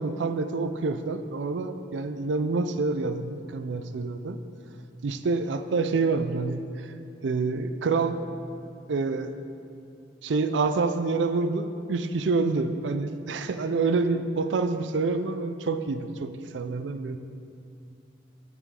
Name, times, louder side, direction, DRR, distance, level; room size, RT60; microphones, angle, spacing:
voice 1, 0.0-4.4 5.0-6.9 7.2-8.3 8.9-9.3 10.2-17.2, right 3 dB, 80° right, 9 dB, 0.4 m, -27 dB
9.9 x 6.7 x 3.7 m, 2.5 s
head